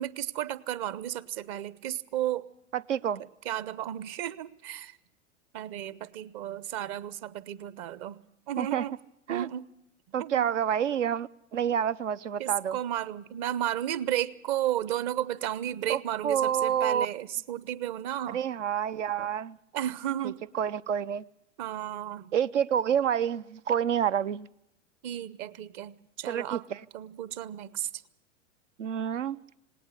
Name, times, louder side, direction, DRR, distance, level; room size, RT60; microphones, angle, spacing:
voice 1, 0.0-2.5 3.4-4.9 5.5-8.2 8.5-8.9 9.3-9.7 10.2-10.5 12.4-18.4 19.7-20.4 21.6-22.3 25.0-26.6 26.9-27.9, right 12 dB, 40° right, 0.9 m, -33 dB
voice 2, 2.7-3.2 8.6-8.8 9.3-9.5 10.1-12.8 15.9-17.1 18.3-19.6 20.2-21.2 22.3-24.5 26.3-26.8 28.8-29.4, right 9 dB, 70° right, 0.7 m, -28 dB
19.0 x 18.0 x 8.1 m
figure-of-eight pair, 95°, 39 cm